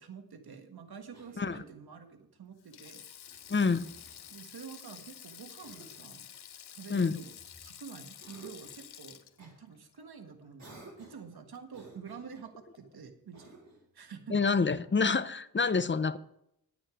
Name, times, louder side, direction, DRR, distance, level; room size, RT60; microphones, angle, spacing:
voice 1, 0.0-3.0 4.3-6.3 6.7-7.3 7.6-13.5 13.9-14.4, right 6 dB, 75° right, 6 dB, 1.7 m, -48 dB
Cough, 1.1-1.9 3.2-4.4 5.6-6.1 6.9-7.8 8.2-8.8 9.4-9.6 10.6-11.3 11.7-12.5 13.3-13.9, right 2 dB, 45° right, 4.8 m, -54 dB
Sink (filling or washing), 2.6-11.1 11.3-11.6 12.7-13.0, left 10 dB, 85° left, 0.8 m, -50 dB
voice 2, 3.5-3.9 6.9-7.2 14.3-16.2, left 4 dB, 30° left, 13 dB, 0.8 m, -27 dB
11.0 x 9.2 x 5.0 m, 0.78 s
cardioid pair, 65°, 38 cm